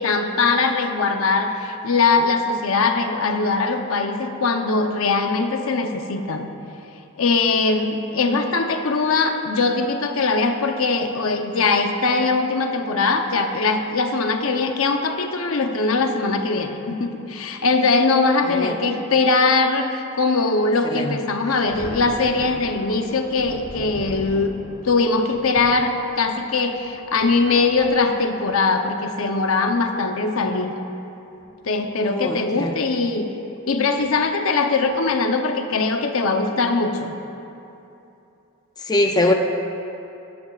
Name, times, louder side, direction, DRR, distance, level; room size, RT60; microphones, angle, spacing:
voice 1, 0.0-6.5 7.2-24.5 24.8-25.9 26.2-30.7 31.6-33.3 33.7-37.1, left 3 dB, 70° left, 5 dB, 0.8 m, -21 dB
Thunder, 21.7-28.7 29.7-29.8 31.3-31.5 31.9-32.0 34.0-34.2 34.9-35.2, right 1 dB, 45° right, 1.7 m, -40 dB
voice 2, 32.0-32.7 38.8-39.3, left 1 dB, 20° left, 3 dB, 0.4 m, -22 dB
15.0 x 13.0 x 2.4 m, 2.9 s
head